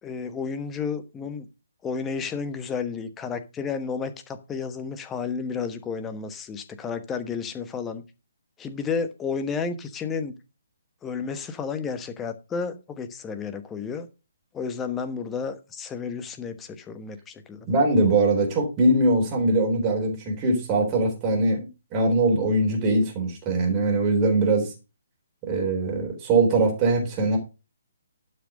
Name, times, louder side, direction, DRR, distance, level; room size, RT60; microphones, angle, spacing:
voice 1, 0.0-1.5 1.8-8.0 8.6-10.3 11.0-14.1 14.5-17.7, left 5 dB, 10° left, 9 dB, 1.1 m, -32 dB
voice 2, 17.7-24.7 25.4-27.4, right 2 dB, 25° right, 1 dB, 3.7 m, -22 dB
11.5 x 6.2 x 5.1 m, 0.30 s
figure-of-eight pair, 135°, 0 cm